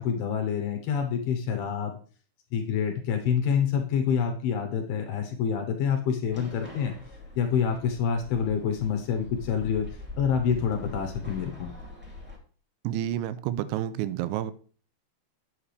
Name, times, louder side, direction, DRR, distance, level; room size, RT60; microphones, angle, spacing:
voice 1, 0.0-2.0 2.5-6.9 7.4-9.9 10.1-11.7, left 7 dB, 75° left, 4 dB, 2.5 m, -27 dB
sound 1, 6.3-12.4, left 3 dB, 5° right, 1.0 m, -43 dB
voice 2, 12.8-14.5, right 12 dB, 90° right, 14 dB, 3.0 m, -29 dB
9.8 x 8.3 x 3.3 m, 0.42 s
omnidirectional pair, 5.3 m